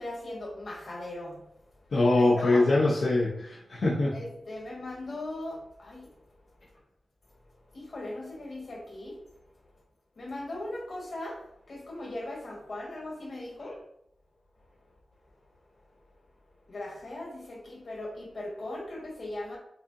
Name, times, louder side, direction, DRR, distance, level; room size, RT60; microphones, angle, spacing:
voice 1, 0.0-1.4 2.2-2.6 4.1-6.1 7.7-9.1 10.2-11.4 11.7-13.8 16.7-19.6, left 1 dB, 60° left, -2 dB, 1.6 m, -38 dB
voice 2, 1.9-4.2, left 2 dB, 80° left, -6 dB, 0.8 m, -23 dB
6.5 x 2.7 x 2.6 m, 0.77 s
wide cardioid pair, 85°, 0 cm